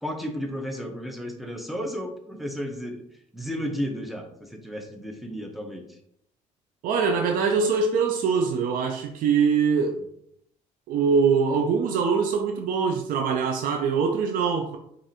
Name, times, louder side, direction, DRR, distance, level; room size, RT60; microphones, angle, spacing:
voice 1, 0.0-3.0 3.3-6.0, equal, ahead, 2 dB, 0.8 m, -33 dB
voice 2, 6.8-10.0 10.9-14.8, right 5 dB, 70° right, 4 dB, 0.5 m, -23 dB
4.7 x 2.6 x 2.8 m, 0.71 s
cardioid pair, 85°, 15 cm